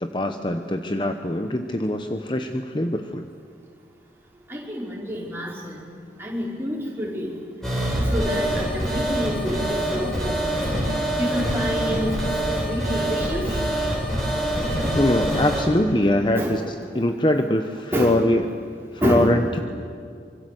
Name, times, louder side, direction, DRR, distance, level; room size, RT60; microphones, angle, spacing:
voice 1, 0.0-3.3 14.9-16.6 16.9-18.5 19.0-19.6, left 1 dB, 25° left, 6 dB, 0.9 m, -22 dB
voice 2, 4.5-5.8 6.2-7.3 8.1-10.6 11.2-12.1 12.6-13.5 16.3-16.5 17.9-18.2 19.0-19.3, equal, 15° right, -4 dB, 5.3 m, -27 dB
sound 1, 7.6-15.6, right 1 dB, ahead, 7.3 m, -25 dB
25.5 x 24.0 x 7.9 m, 2.3 s
head